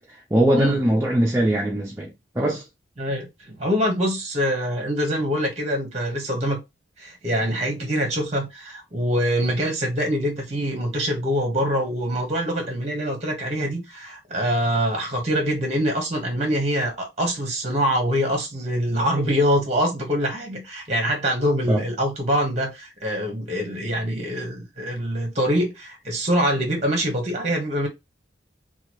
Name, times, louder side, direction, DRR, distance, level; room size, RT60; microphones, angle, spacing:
voice 1, 0.0-2.6 21.7-21.8, right 1 dB, 15° right, 0.4 m, -22 dB
voice 2, 3.0-6.6 7.0-27.9, equal, 35° right, 0.9 m, -24 dB
2.8 x 2.2 x 2.9 m
head